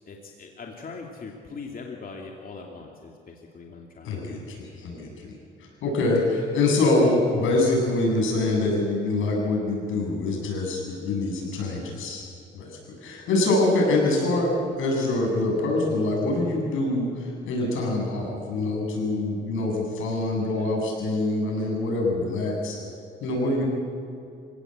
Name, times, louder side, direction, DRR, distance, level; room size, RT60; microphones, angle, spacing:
voice 1, 0.1-4.4 20.6-20.7, left 4 dB, 45° left, 0 dB, 2.6 m, -41 dB
voice 2, 4.0-5.3 5.8-12.2 12.5-22.8 23.2-23.6, left 2 dB, 85° left, -1 dB, 7.4 m, -25 dB
26.5 x 17.0 x 7.9 m, 2.5 s
cardioid pair, 90°, 20 cm